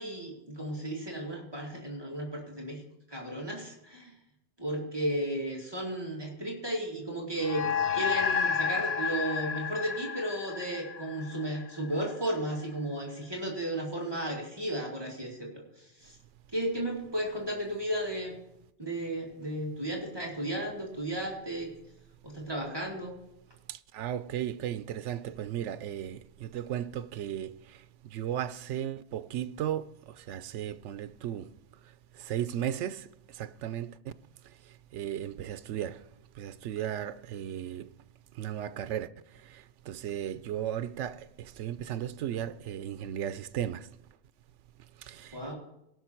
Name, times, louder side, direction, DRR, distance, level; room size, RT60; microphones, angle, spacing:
voice 1, 0.0-2.8 3.1-4.1 4.6-7.6 7.9-15.6 16.0-16.2 16.5-18.4 18.8-21.7 22.2-23.2 45.3-45.5, right 1 dB, 20° right, 2.2 m, -34 dB
sound 1, 7.4-12.1, left 6 dB, 60° left, 0.4 m, -31 dB
voice 2, 23.7-31.5 31.8-34.1 34.4-36.1 36.3-37.9 38.3-43.9 45.0-45.4, right 10 dB, 85° right, 0.9 m, -36 dB
18.0 x 6.1 x 4.4 m
omnidirectional pair, 1.2 m